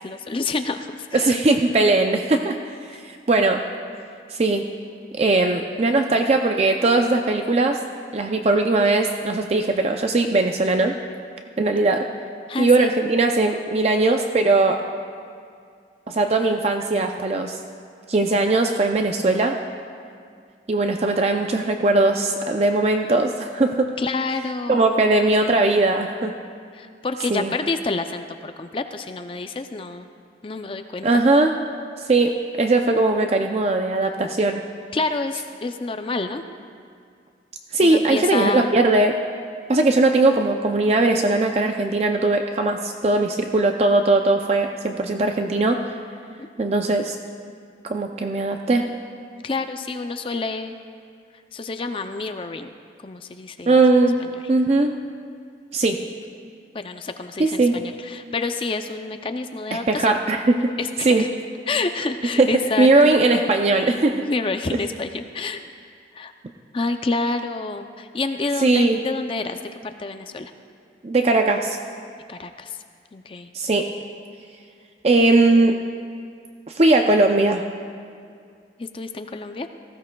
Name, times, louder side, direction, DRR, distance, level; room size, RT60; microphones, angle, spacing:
voice 1, 0.0-1.4 2.9-3.0 12.5-12.9 24.0-24.9 26.7-30.1 30.4-31.2 34.9-36.4 37.8-38.7 49.4-50.7 51.5-52.7 53.0-53.8 56.7-60.1 60.8-61.3 61.7-63.1 64.2-65.7 66.1-66.3 66.7-70.5 72.3-72.8 73.1-73.5 78.8-79.7, left 3 dB, 30° left, 7 dB, 0.4 m, -28 dB
voice 2, 1.1-2.6 3.0-3.7 4.3-4.7 5.1-7.8 8.1-11.0 11.6-12.1 12.6-14.8 16.1-17.6 18.1-19.6 20.7-24.0 24.7-26.4 27.3-27.5 31.0-31.6 32.1-34.6 37.7-39.2 39.7-45.8 46.6-47.2 47.9-48.9 53.7-54.2 54.5-54.9 55.7-56.1 57.4-57.8 59.7-60.7 61.0-61.3 62.4-62.5 62.8-64.2 68.6-69.0 71.0-71.8 73.5-73.9 75.0-75.8 76.7-77.6, right 2 dB, 35° right, 4 dB, 0.4 m, -19 dB
18.5 x 15.5 x 2.3 m, 2.2 s
head